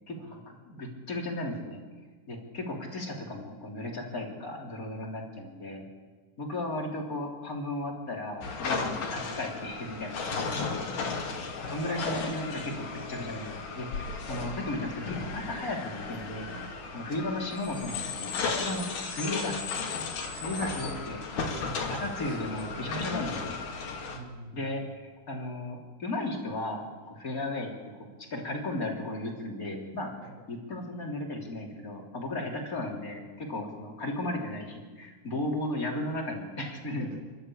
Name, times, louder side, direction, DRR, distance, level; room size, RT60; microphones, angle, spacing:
voice 1, 0.1-1.8 2.3-5.8 6.4-10.4 11.7-16.5 16.9-19.6 20.3-21.2 21.9-23.6 24.5-27.7 28.3-30.1 30.5-37.2, left 1 dB, 25° left, 0 dB, 3.4 m, -35 dB
sound 1, 8.4-24.2, left 4 dB, 60° left, 3.7 m, -35 dB
voice 2, 10.5-11.1 16.9-17.1 20.5-21.0 21.9-22.0 24.0-24.8 30.2-30.3 37.0-37.2, right 1 dB, 75° right, 0 dB, 5.7 m, -45 dB
29.5 x 12.5 x 8.6 m, 1.4 s
omnidirectional pair, 4.5 m